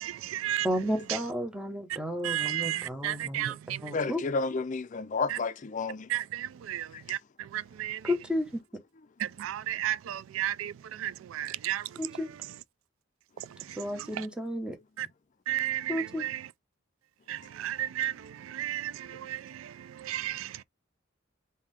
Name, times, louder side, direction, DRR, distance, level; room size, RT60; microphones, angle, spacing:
voice 1, 0.0-0.7 2.2-3.5 6.1-6.2 6.7-6.8 7.1-7.2 7.8-8.0 9.4-10.7 11.0-11.8 15.5-16.4 17.6-18.1 18.6-18.9 20.1-20.4, right 12 dB, 90° right, 0.3 m, -32 dB
voice 2, 0.6-3.5 3.8-4.2 8.3-8.5 12.0-12.3 13.8-14.7 15.9-16.2, equal, 5° right, 0.8 m, -32 dB
voice 3, 3.9-6.1, left 4 dB, 40° left, 0.4 m, -31 dB
3.6 x 2.7 x 3.3 m
head